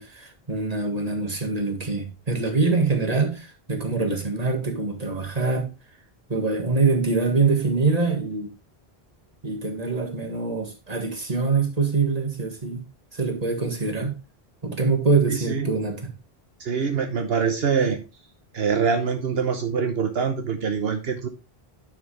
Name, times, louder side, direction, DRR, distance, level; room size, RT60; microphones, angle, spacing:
voice 1, 0.0-5.7 6.3-8.5 9.4-12.9 13.1-14.2 14.6-16.1, right 4 dB, 40° right, 1.8 m, -24 dB
voice 2, 15.3-15.7 16.6-18.0 18.5-21.3, right 6 dB, 75° right, 1.1 m, -24 dB
10.5 x 6.3 x 3.2 m
omnidirectional pair, 1.0 m